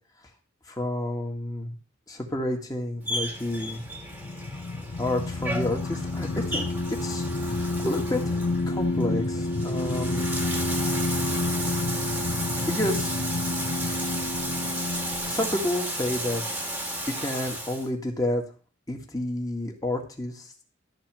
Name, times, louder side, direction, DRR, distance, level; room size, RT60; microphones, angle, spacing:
voice 1, 0.7-1.8 2.1-3.8 5.0-6.6 7.0-7.2 7.6-8.3 8.7-10.3 12.7-13.1 13.9-14.5 15.2-16.7 17.2-18.4 18.9-20.5, left 1 dB, 20° left, 2 dB, 1.9 m, -30 dB
Bathtub (filling or washing), 3.0-17.9, right 1 dB, 10° right, 1.6 m, -34 dB
sound 1, 3.4-17.0, left 2 dB, 60° left, 0.6 m, -30 dB
13.0 x 4.4 x 7.6 m, 0.40 s
head